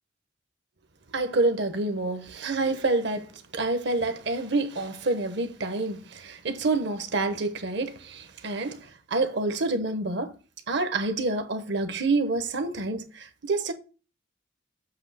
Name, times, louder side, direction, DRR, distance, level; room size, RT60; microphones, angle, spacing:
voice 1, 1.1-3.3 3.5-8.8 9.1-10.3 10.7-13.7, right 3 dB, 65° right, 1.0 m, -27 dB
7.9 x 2.8 x 5.5 m
head